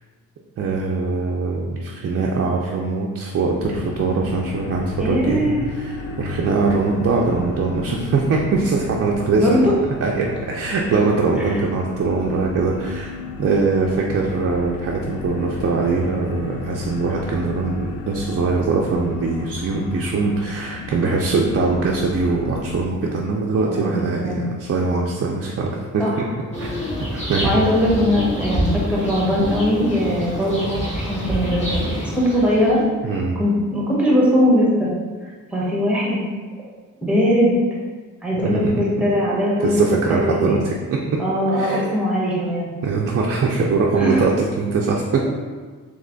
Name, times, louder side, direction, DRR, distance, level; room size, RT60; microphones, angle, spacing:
voice 1, 0.6-5.5 5.8-9.6 10.0-13.1 13.4-26.1 26.6-26.7 27.1-27.5 33.0-33.4 38.4-38.7 39.6-41.2 41.5-41.9 42.8-45.3, right 4 dB, 45° right, -2 dB, 0.5 m, -22 dB
sound 1, 3.6-22.8, left 5 dB, 80° left, 0.5 m, -33 dB
voice 2, 5.0-5.6 9.3-9.7 11.4-11.6 23.6-24.4 26.0-26.1 27.4-32.8 33.3-34.9 35.5-36.2 37.0-37.5 38.2-39.8 40.1-40.6 41.2-42.7 44.0-44.2, equal, 5° right, -6 dB, 1.3 m, -20 dB
sound 2, 26.5-32.8, equal, 20° left, 1.4 m, -26 dB
3.5 x 3.2 x 3.9 m, 1.5 s
cardioid pair, 90°, 34 cm